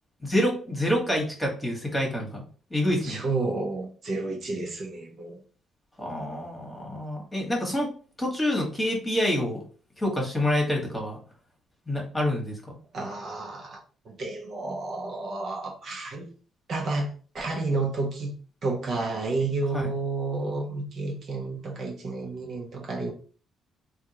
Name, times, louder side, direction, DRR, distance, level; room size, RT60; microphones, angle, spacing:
voice 1, 0.2-2.4 2.7-3.2 6.0-7.9 8.2-9.6 10.0-11.2 11.9-12.8 19.7-19.9, left 1 dB, 10° left, -1 dB, 1.3 m, -27 dB
voice 2, 3.0-5.4 12.9-13.8 14.0-16.3 16.7-17.1 17.3-18.3 18.6-23.1, right 3 dB, 55° right, -1 dB, 1.0 m, -30 dB
3.4 x 2.4 x 2.9 m, 0.41 s
cardioid pair, 90°, 0 cm